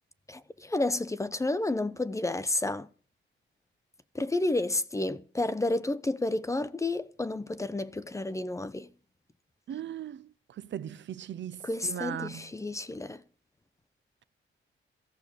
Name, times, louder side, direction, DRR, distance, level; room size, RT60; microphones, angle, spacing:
voice 1, 0.3-2.9 4.1-8.9 11.6-13.2, left 2 dB, 15° left, 0.6 m, -31 dB
voice 2, 9.7-10.3 10.6-12.5, right 10 dB, 60° right, 0.6 m, -38 dB
14.0 x 6.7 x 8.6 m
wide cardioid pair, 145°, 21 cm